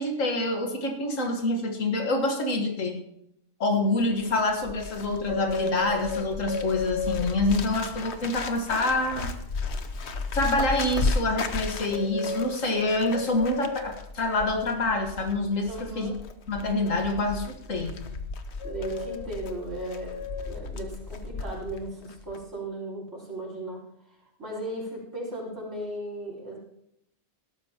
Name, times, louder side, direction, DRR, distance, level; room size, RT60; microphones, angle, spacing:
voice 1, 0.0-3.0 3.6-9.3 10.3-16.1 16.5-18.0, left 2 dB, 85° left, 3 dB, 1.9 m, -26 dB
Bird, 4.0-21.8 22.1-22.4, left 4 dB, 60° left, 1.2 m, -33 dB
voice 2, 15.7-16.2 18.6-26.6, right 1 dB, 70° right, -3 dB, 4.9 m, -36 dB
17.0 x 13.0 x 2.9 m, 0.76 s
omnidirectional pair, 1.3 m